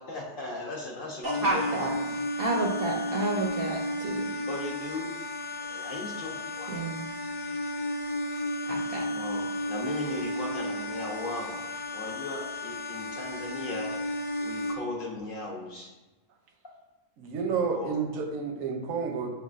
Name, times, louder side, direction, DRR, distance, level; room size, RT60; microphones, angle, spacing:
voice 1, 0.0-1.6 4.5-5.1 5.6-6.3 6.6-6.8 9.1-14.0 14.4-15.9 17.7-17.9, left 2 dB, 55° left, -3 dB, 0.7 m, -37 dB
sound 1, 1.2-14.7, left 1 dB, 85° left, 1.0 m, -33 dB
voice 2, 1.2-4.3 6.7-7.0 8.7-9.1, right 2 dB, 65° right, -1 dB, 0.6 m, -30 dB
voice 3, 17.2-19.3, right 5 dB, 85° right, 4 dB, 1.0 m, -30 dB
6.6 x 2.3 x 2.4 m, 1.1 s
omnidirectional pair, 1.4 m